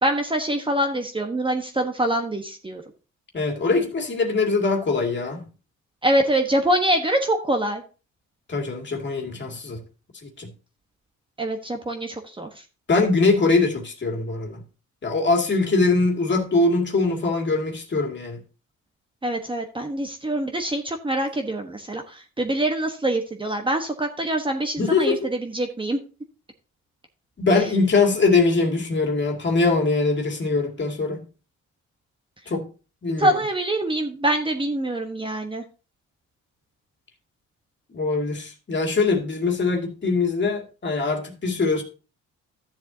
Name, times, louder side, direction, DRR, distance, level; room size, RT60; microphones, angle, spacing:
voice 1, 0.0-2.8 6.0-7.8 11.4-12.5 19.2-26.0 33.2-35.6, right 1 dB, 15° right, 1.2 m, -24 dB
voice 2, 3.3-5.5 8.5-9.8 10.2-10.5 12.9-14.6 15.0-18.4 24.8-25.3 27.4-31.2 32.5-32.7 33.0-33.4 37.9-41.8, left 3 dB, 35° left, 2.3 m, -22 dB
13.0 x 7.2 x 2.7 m
cardioid pair, 90°, 30 cm